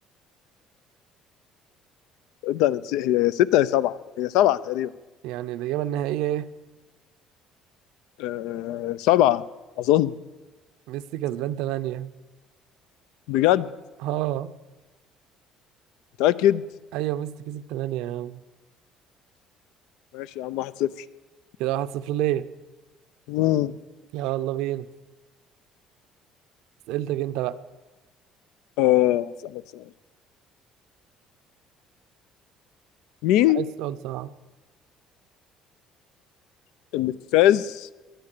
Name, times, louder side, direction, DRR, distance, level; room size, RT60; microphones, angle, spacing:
voice 1, 2.4-4.9 8.2-9.4 9.8-10.1 13.3-13.7 16.2-16.6 20.1-20.9 23.3-23.7 28.8-29.8 33.2-33.6 36.9-37.9, left 13 dB, 85° left, 17 dB, 0.5 m, -21 dB
voice 2, 5.2-6.5 10.9-12.1 14.0-14.5 16.9-18.4 21.6-22.4 24.1-24.9 26.9-27.6 33.5-34.3, right 13 dB, 80° right, 13 dB, 0.6 m, -28 dB
18.5 x 11.5 x 6.7 m, 1.2 s
cardioid pair, 175°, 0 cm